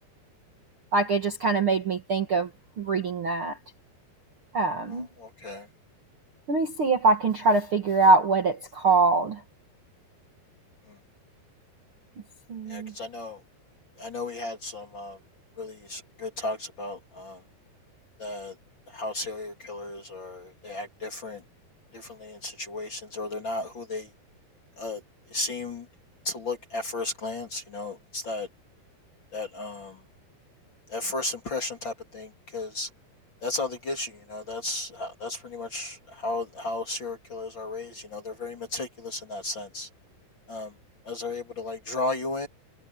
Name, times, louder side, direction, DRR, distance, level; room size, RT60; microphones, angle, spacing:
voice 1, 0.9-2.5 2.8-3.6 4.5-5.1 6.5-9.4 12.5-12.9, right 3 dB, 45° right, 1.9 m, -23 dB
voice 2, 4.9-5.7 10.9-11.0 12.7-13.4 14.0-15.2 15.6-17.4 18.2-18.5 18.9-21.4 21.9-24.1 24.8-25.0 25.3-25.9 26.2-28.5 29.3-30.0 30.9-32.9 33.4-39.9 40.5-40.7 41.0-42.5, left 2 dB, 30° left, 2.9 m, -34 dB
omnidirectional pair, 4.8 m